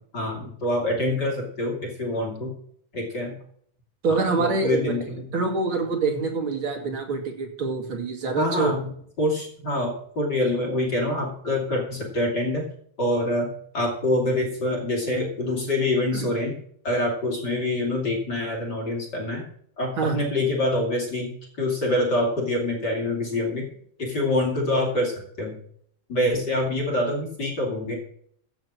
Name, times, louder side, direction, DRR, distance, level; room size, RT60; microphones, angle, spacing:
voice 1, 0.1-2.5 2.9-3.4 4.1-5.3 8.4-8.9 9.2-12.6 13.0-16.5 16.8-19.4 19.8-23.7 24.0-25.6 26.1-28.0, left 1 dB, 35° left, -1 dB, 2.7 m, -26 dB
voice 2, 4.0-4.9 5.3-8.8 16.1-16.3 20.0-20.2, right 4 dB, 40° right, 2 dB, 2.8 m, -25 dB
15.0 x 6.1 x 7.4 m, 0.65 s
omnidirectional pair, 3.7 m